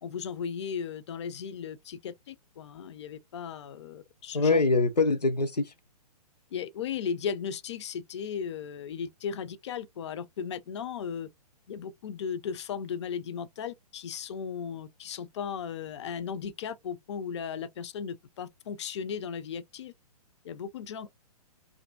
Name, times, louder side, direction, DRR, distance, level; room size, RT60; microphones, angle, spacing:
voice 1, 0.0-4.6 6.5-11.3 11.7-19.9 20.4-21.1, left 7 dB, 45° left, 0.4 m, -36 dB
voice 2, 4.3-5.7, left 3 dB, 85° left, 0.6 m, -24 dB
2.6 x 2.5 x 2.2 m
figure-of-eight pair, 120°, 20 cm